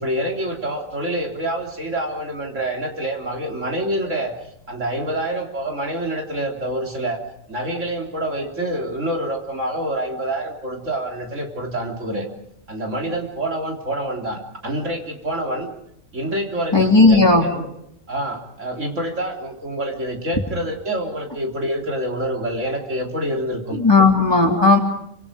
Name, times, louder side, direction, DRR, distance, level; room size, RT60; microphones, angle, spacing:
voice 1, 0.0-4.3 4.7-7.2 7.5-12.3 12.7-15.7 16.1-17.7 18.1-23.8 24.4-24.6, right 1 dB, 80° right, 1 dB, 3.9 m, -26 dB
voice 2, 16.7-17.5 23.7-24.8, left 3 dB, 20° left, 1 dB, 3.4 m, -14 dB
27.5 x 26.0 x 5.2 m, 0.76 s
omnidirectional pair, 1.3 m